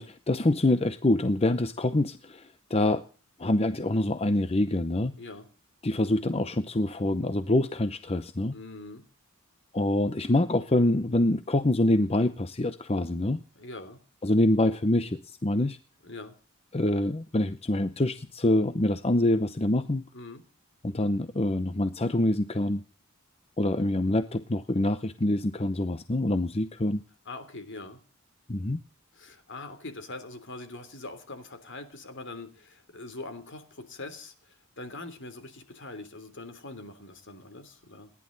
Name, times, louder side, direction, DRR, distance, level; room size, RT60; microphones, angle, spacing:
voice 1, 0.0-3.0 3.4-5.1 5.8-8.5 9.7-13.4 14.2-15.8 16.7-20.0 20.8-22.8 23.6-27.0 28.5-28.8, left 1 dB, 25° left, 11 dB, 0.7 m, -25 dB
voice 2, 8.5-9.0 13.5-14.0 16.0-16.3 20.1-20.4 27.2-28.0 29.1-34.3 34.8-38.1, left 2 dB, 55° left, 10 dB, 3.3 m, -42 dB
30.0 x 11.0 x 4.0 m, 0.37 s
head